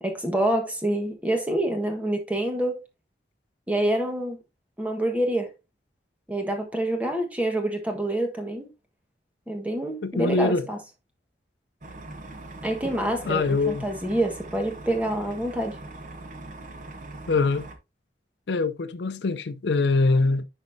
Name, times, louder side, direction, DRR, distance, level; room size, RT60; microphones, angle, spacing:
voice 1, 0.0-2.8 3.7-4.4 4.8-5.5 6.3-8.7 9.5-10.8 12.6-15.8, right 1 dB, 10° right, 1.3 m, -27 dB
voice 2, 10.0-10.7 13.2-13.9 17.3-17.7 18.5-20.4, left 3 dB, 70° left, 0.5 m, -23 dB
sound 1, 11.8-17.8, right 2 dB, 40° right, 1.0 m, -41 dB
10.5 x 4.2 x 2.7 m
head